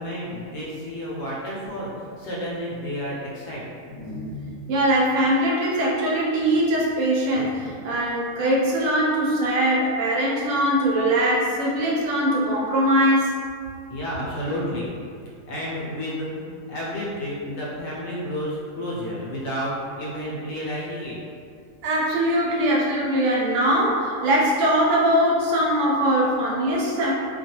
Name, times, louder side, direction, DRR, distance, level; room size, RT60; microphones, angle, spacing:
voice 1, 0.0-3.8 13.9-21.2, equal, 65° left, -6 dB, 0.9 m, -31 dB
voice 2, 3.9-13.3 21.8-27.1, right 1 dB, 80° right, -4 dB, 1.0 m, -22 dB
2.3 x 2.3 x 2.8 m, 2.2 s
omnidirectional pair, 1.3 m